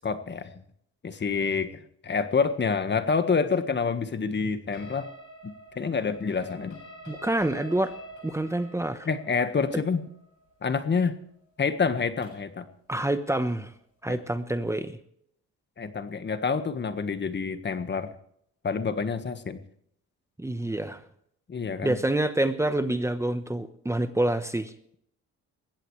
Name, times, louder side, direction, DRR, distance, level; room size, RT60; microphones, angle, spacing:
voice 1, 0.0-0.5 1.0-1.7 2.0-5.1 5.4-6.8 9.0-10.0 10.6-11.1 11.6-12.7 14.1-14.2 15.8-18.1 18.6-19.6 21.5-22.0, left 5 dB, 35° left, 10 dB, 1.5 m, -27 dB
sound 1, 4.7-12.6, right 1 dB, 85° left, 7.6 m, -47 dB
voice 2, 7.1-7.9 8.2-9.1 12.9-13.7 14.0-15.0 20.4-21.0 21.8-24.7, right 1 dB, 10° right, 10 dB, 1.1 m, -27 dB
21.0 x 16.0 x 3.3 m, 0.70 s
cardioid pair, 90°, 30 cm